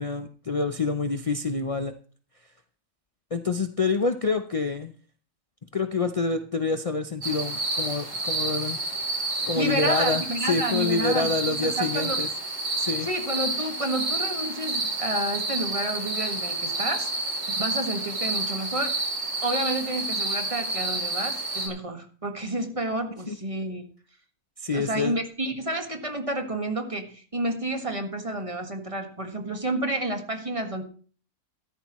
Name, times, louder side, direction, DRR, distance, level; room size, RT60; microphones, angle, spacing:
voice 1, 0.0-1.9 3.3-4.9 5.7-8.8 9.5-12.3 12.8-13.1 23.3-23.4 24.6-25.2, left 4 dB, 50° left, 8 dB, 0.4 m, -27 dB
sound 1, 7.2-21.7, right 2 dB, 50° right, 4.1 m, -29 dB
voice 2, 9.5-12.2 13.0-17.1 17.5-19.0 19.4-23.8 24.7-30.8, right 1 dB, 20° right, 4 dB, 1.7 m, -30 dB
14.5 x 13.0 x 3.1 m, 0.42 s
omnidirectional pair, 1.7 m